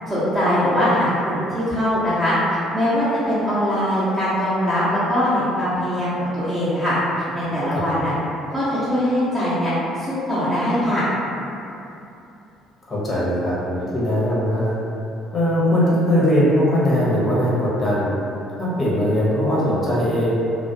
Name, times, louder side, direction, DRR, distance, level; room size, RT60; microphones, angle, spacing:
voice 1, 0.1-6.9 7.3-8.1 8.5-11.1, equal, 15° right, -13 dB, 0.8 m, -21 dB
voice 2, 12.9-14.7 15.3-18.1 18.6-20.4, equal, 30° left, -8 dB, 0.7 m, -20 dB
2.3 x 2.1 x 2.6 m, 2.8 s
figure-of-eight pair, 50°, 0 cm